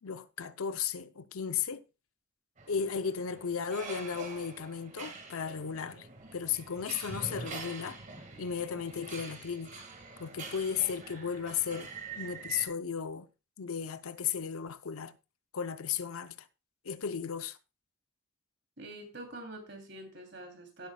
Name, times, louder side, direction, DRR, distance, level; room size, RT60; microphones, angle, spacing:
voice 1, 0.0-1.8 2.7-8.0 8.4-9.8 10.2-13.3 13.6-15.1 15.5-16.5 16.8-17.6, left 7 dB, 90° left, 0.7 m, -35 dB
sound 1, 2.6-12.7, right 4 dB, 35° right, 1.8 m, -45 dB
voice 2, 18.8-20.9, right 1 dB, 55° right, 3.0 m, -45 dB
16.0 x 8.4 x 2.3 m
head